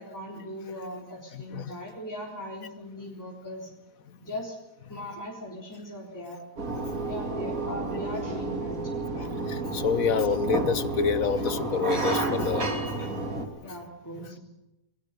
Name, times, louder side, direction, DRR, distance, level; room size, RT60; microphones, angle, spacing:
voice 1, 0.0-3.7 4.2-4.6 4.9-6.4 7.0-9.5 13.6-14.4, equal, 10° left, -3 dB, 4.1 m, -39 dB
voice 2, 1.3-1.7 9.2-13.2, left 6 dB, 80° left, 14 dB, 1.6 m, -28 dB
sound 1, 6.6-13.5, right 2 dB, 80° right, 3.4 m, -30 dB
29.0 x 21.5 x 6.8 m, 0.92 s
omnidirectional pair, 1.4 m